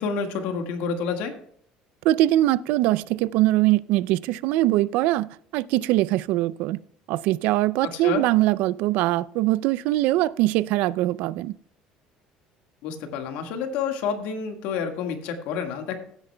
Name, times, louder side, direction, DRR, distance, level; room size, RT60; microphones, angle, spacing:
voice 1, 0.0-1.3 7.8-8.2 12.8-15.9, left 6 dB, 75° left, 1.6 m, -29 dB
voice 2, 2.0-6.8 7.1-11.5, right 16 dB, 65° right, 0.4 m, -22 dB
15.5 x 8.8 x 2.2 m
cardioid pair, 165°, 3 cm